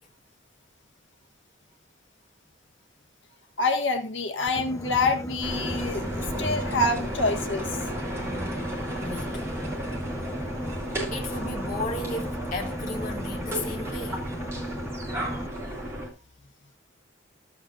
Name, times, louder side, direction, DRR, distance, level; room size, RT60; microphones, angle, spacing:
voice 1, 3.6-7.7, left 2 dB, 75° left, 1.8 m, -26 dB
Boat Water vehicle, 4.5-15.5, equal, 15° left, 1.0 m, -36 dB
sound 1, 5.4-16.1, right 1 dB, 15° right, 3.5 m, -33 dB
voice 2, 9.0-9.6 11.1-14.3, left 2 dB, 40° left, 2.0 m, -35 dB
15.5 x 7.9 x 2.6 m
head